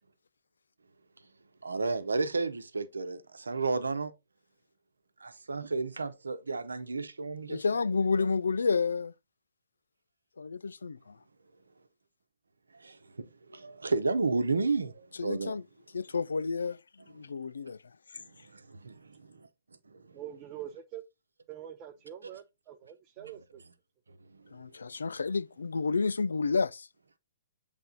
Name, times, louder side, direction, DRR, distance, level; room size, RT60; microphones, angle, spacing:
voice 1, 1.6-4.1 5.2-7.6 12.8-15.6 18.2-19.5 19.9-20.2, right 3 dB, 80° right, 0.8 m, -32 dB
voice 2, 7.5-9.1 10.4-11.2 15.2-15.6 15.9-17.8 18.1-18.2 24.5-26.9, left 4 dB, 75° left, 0.3 m, -30 dB
voice 3, 20.1-21.0 21.5-23.6, right 11 dB, 30° right, 0.6 m, -44 dB
7.9 x 3.5 x 3.8 m
figure-of-eight pair, 120°, 0 cm